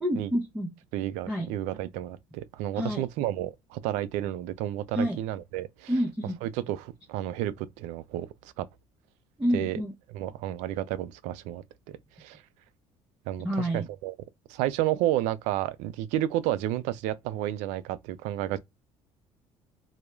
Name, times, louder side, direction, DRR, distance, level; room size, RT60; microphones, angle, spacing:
voice 1, 0.0-0.7 1.3-1.5 2.7-3.0 4.9-5.2 5.9-6.4 9.4-9.9 13.4-13.8, equal, 5° right, 0.7 m, -28 dB
voice 2, 0.9-5.9 6.4-8.7 9.5-9.8 10.1-12.4 13.3-14.2 14.5-18.6, right 13 dB, 85° right, 0.4 m, -31 dB
2.2 x 2.0 x 3.0 m
supercardioid pair, 95°, 12 cm